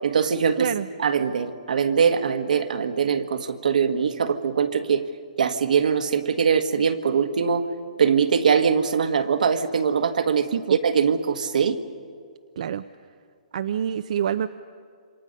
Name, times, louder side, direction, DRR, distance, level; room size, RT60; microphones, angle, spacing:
voice 1, 0.0-0.7 1.0-5.0 5.4-7.6 8.0-11.8, right 6 dB, 80° right, 8 dB, 1.6 m, -22 dB
voice 2, 0.6-0.9 10.5-10.8 12.6-12.8 13.5-14.5, right 9 dB, 60° right, 11 dB, 0.6 m, -26 dB
27.5 x 24.5 x 5.4 m, 2.1 s
hypercardioid pair, 160°, 4 cm